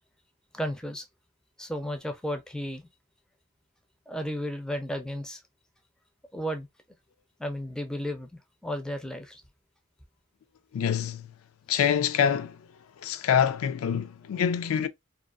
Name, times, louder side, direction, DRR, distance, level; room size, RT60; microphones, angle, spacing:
voice 1, 0.5-1.1 1.6-2.8 4.1-5.4 6.3-6.7 7.4-8.3 8.6-9.4, equal, 5° left, 0.4 m, -33 dB
voice 2, 10.7-11.3 11.7-12.6 13.0-14.9, left 8 dB, 80° left, 0.3 m, -25 dB
2.4 x 2.3 x 2.3 m
head